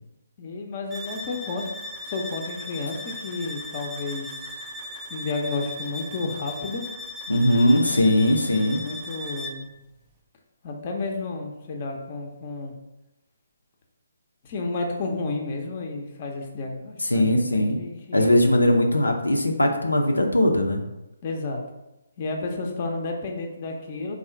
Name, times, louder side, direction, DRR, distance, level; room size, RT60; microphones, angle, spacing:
voice 1, 0.4-1.7 2.1-4.5 5.1-6.8 7.7-8.2 8.8-9.7 10.6-12.7 14.4-17.3 17.5-18.3 21.2-21.6 22.2-24.1, left 3 dB, 35° left, 2 dB, 0.6 m, -31 dB
sound 1, 0.9-9.7, left 2 dB, 10° right, 0.5 m, -37 dB
voice 2, 7.3-8.8 17.0-17.8 18.1-20.8, left 1 dB, 85° left, 2 dB, 0.6 m, -20 dB
3.7 x 2.4 x 4.5 m, 0.94 s
figure-of-eight pair, 140°, 0 cm